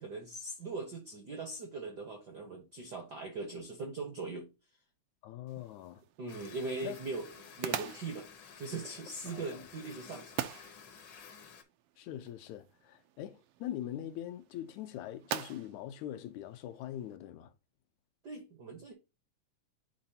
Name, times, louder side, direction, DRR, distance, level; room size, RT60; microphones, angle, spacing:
voice 1, 0.0-4.5 6.2-7.3 7.6-8.3 8.6-10.3 18.2-18.9, right 3 dB, 65° right, 1.0 m, -40 dB
voice 2, 5.2-6.0 6.8-7.0 9.3-9.7 12.0-17.5, left 12 dB, 80° left, 2.0 m, -42 dB
sound 1, 5.5-17.2, right 11 dB, 80° right, 1.3 m, -45 dB
sound 2, 6.3-11.6, left 6 dB, 60° left, 1.2 m, -53 dB
10.5 x 3.9 x 2.8 m
omnidirectional pair, 3.3 m